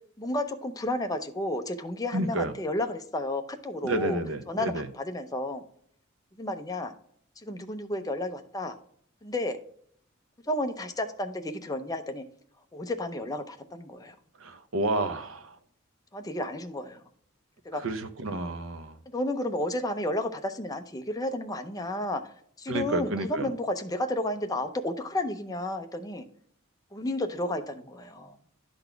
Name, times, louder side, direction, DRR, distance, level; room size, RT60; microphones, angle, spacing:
voice 1, 0.2-4.2 4.5-5.6 6.4-6.9 7.4-8.8 9.2-9.6 10.5-12.2 12.7-14.2 16.1-17.0 17.6-17.8 19.1-22.3 22.6-26.3 26.9-28.4, left 1 dB, 20° left, 0.6 m, -32 dB
voice 2, 2.1-2.5 3.8-4.9 14.4-15.5 17.8-19.0 22.7-23.5, right 2 dB, 70° right, 0.8 m, -30 dB
11.5 x 4.0 x 3.4 m
head